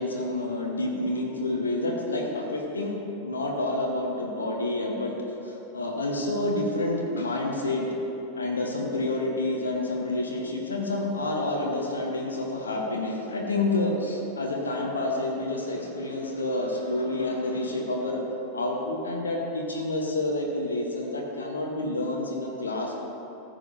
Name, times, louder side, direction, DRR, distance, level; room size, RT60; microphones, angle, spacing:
voice 1, 0.0-3.0 3.2-7.9 8.4-18.2 18.5-22.9, left 2 dB, 75° left, 0 dB, 1.0 m, -29 dB
14.0 x 7.5 x 2.6 m, 3.0 s
figure-of-eight pair, 90°, 0 cm